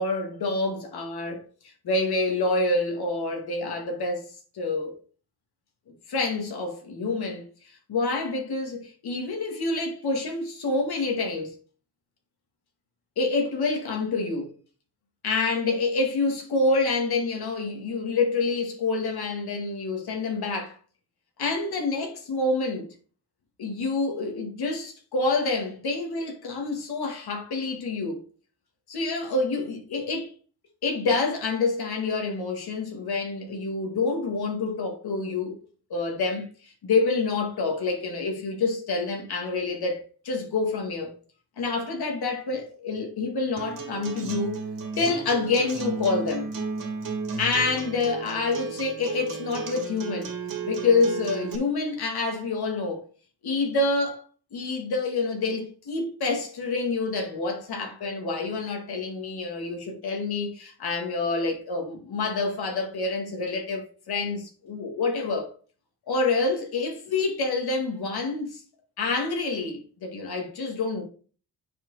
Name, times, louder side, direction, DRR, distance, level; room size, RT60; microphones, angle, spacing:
voice 1, 0.0-1.4 1.8-4.2 4.5-4.9 6.1-7.5 7.9-11.6 13.2-14.5 15.2-20.8 21.4-22.9 23.6-28.2 28.9-30.3 30.8-35.6 35.9-40.0 40.2-41.1 41.6-44.6 45.0-46.5 47.4-50.3 50.6-53.1 53.4-54.2 54.5-65.5 66.1-68.6 69.0-71.0, left 3 dB, 65° left, 2.2 m, -27 dB
Acoustic guitar, 43.6-51.6, right 5 dB, 50° right, 2.1 m, -34 dB
7.8 x 4.7 x 4.0 m
cardioid pair, 95°, 41 cm